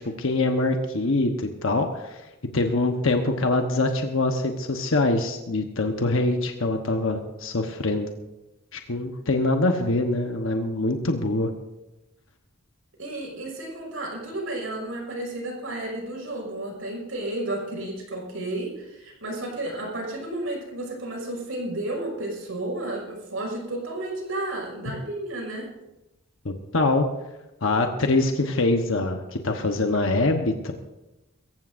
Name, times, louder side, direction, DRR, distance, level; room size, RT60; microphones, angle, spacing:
voice 1, 0.0-2.2 2.5-8.1 8.7-11.5 26.4-27.1 27.6-30.7, left 2 dB, 65° left, 4 dB, 1.1 m, -24 dB
voice 2, 13.0-25.7, right 1 dB, 70° right, 0 dB, 5.7 m, -32 dB
23.0 x 15.0 x 2.6 m, 1.0 s
head